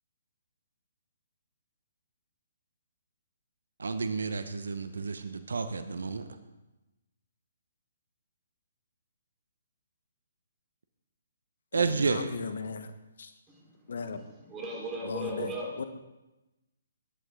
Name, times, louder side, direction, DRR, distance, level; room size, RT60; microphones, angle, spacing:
voice 1, 3.8-6.2 11.7-12.3, right 4 dB, 70° right, 10 dB, 1.1 m, -30 dB
voice 2, 11.7-12.9 13.2-13.3 13.9-14.3 15.0-15.8, left 5 dB, 65° left, 9 dB, 1.3 m, -37 dB
voice 3, 13.5-15.8, right 2 dB, 15° right, -2 dB, 4.6 m, -38 dB
21.5 x 11.0 x 3.9 m, 1.0 s
figure-of-eight pair, 135°, 0 cm